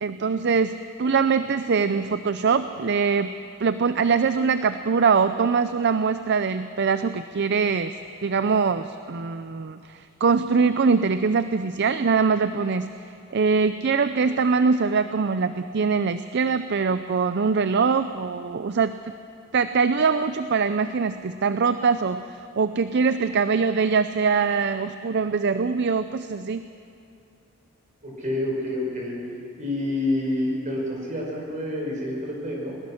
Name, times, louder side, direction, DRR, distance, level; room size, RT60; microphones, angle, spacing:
voice 1, 0.0-3.3 3.6-7.9 8.2-12.9 13.3-18.9 19.5-22.3 22.6-26.6, right 5 dB, 55° right, 11 dB, 0.5 m, -23 dB
voice 2, 28.0-29.2 29.6-32.7, left 1 dB, 40° right, -1 dB, 5.2 m, -28 dB
21.0 x 19.5 x 6.4 m, 2.6 s
head